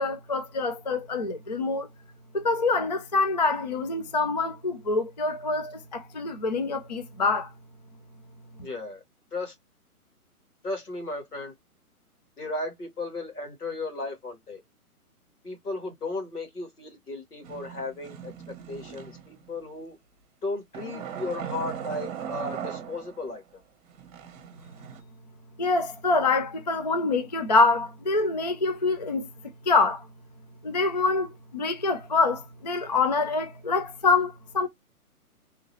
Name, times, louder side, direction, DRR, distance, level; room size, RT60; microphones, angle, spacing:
voice 1, 0.0-1.9 2.3-7.5 25.6-29.3 29.7-30.0 30.6-34.7, left 3 dB, 30° left, 0.4 m, -25 dB
voice 2, 8.6-9.0 9.3-9.5 10.6-11.5 12.4-14.6 15.4-18.3 18.7-20.0 20.4-23.4, left 2 dB, 80° left, 2.4 m, -35 dB
sound 1, 17.4-19.5 20.7-23.4 23.9-25.0, right 8 dB, 25° right, 1.1 m, -38 dB
3.6 x 3.0 x 3.0 m
figure-of-eight pair, 135°, 45 cm